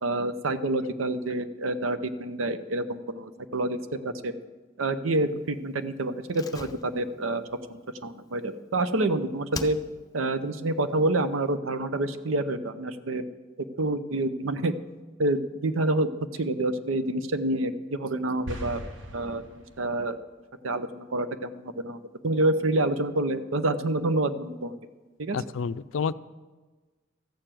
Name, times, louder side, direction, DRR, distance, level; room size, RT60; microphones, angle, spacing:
voice 1, 0.0-4.3 4.8-7.4 7.7-9.8 10.1-13.2 13.8-14.7 15.2-16.1 16.4-18.8 19.1-20.2 20.6-24.8 25.2-25.4, right 2 dB, 85° right, 11 dB, 0.7 m, -28 dB
Slam, 6.3-9.1 9.5-10.3 10.5-10.6, left 3 dB, 20° left, 0.5 m, -42 dB
sound 1, 18.4-20.1, equal, 65° right, 1.4 m, -39 dB
voice 2, 25.3-26.1, left 6 dB, 70° left, 15 dB, 0.4 m, -29 dB
14.0 x 6.8 x 7.5 m, 1.3 s
head